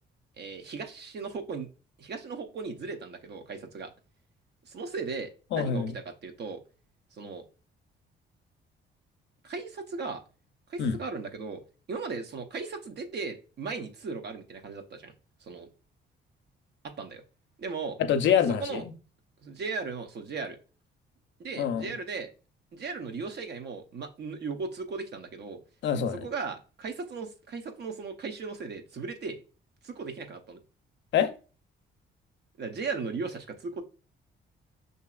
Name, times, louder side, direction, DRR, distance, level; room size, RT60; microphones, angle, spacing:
voice 1, 0.4-1.7 2.0-3.9 4.6-6.6 7.1-7.4 9.4-10.2 10.7-11.6 11.9-15.1 15.4-15.7 16.8-17.2 17.6-18.0 18.6-18.8 19.4-20.6 21.4-22.3 22.7-25.6 26.2-29.4 29.8-30.6 32.6-33.8, right 4 dB, 55° right, 7 dB, 0.7 m, -37 dB
voice 2, 5.5-5.9 10.8-11.0 18.0-18.9 21.6-21.8 25.8-26.3 31.1-31.3, left 8 dB, 70° left, 10 dB, 0.5 m, -25 dB
5.8 x 2.7 x 2.4 m, 0.35 s
cardioid pair, 90°, 20 cm